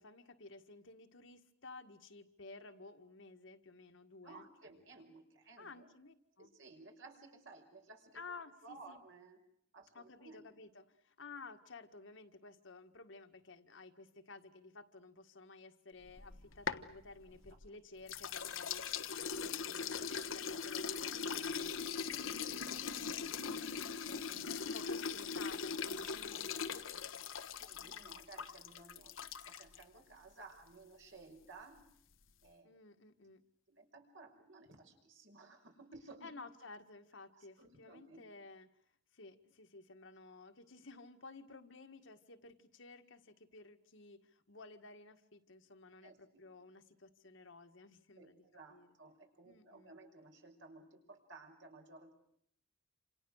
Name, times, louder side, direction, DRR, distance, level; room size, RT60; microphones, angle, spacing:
voice 1, 0.0-4.5 5.6-6.5 8.1-9.0 9.9-18.9 19.2-27.3 27.8-28.2 32.6-33.4 36.2-38.7 39.1-48.4 48.7-48.9 49.5-49.9, left 3 dB, 70° left, 6 dB, 1.8 m, -54 dB
voice 2, 4.2-5.9 6.4-8.2 8.6-9.4 9.7-10.4 24.0-24.3 26.3-26.8 27.6-31.8 32.4-32.8 33.7-36.3 37.3-38.3 46.0-46.4 48.2-52.1, right 3 dB, 70° right, 3 dB, 5.5 m, -57 dB
sound 1, 16.1-17.7 18.1-29.8, left 6 dB, 85° left, 1.3 m, -41 dB
28.0 x 27.5 x 6.5 m, 0.69 s
head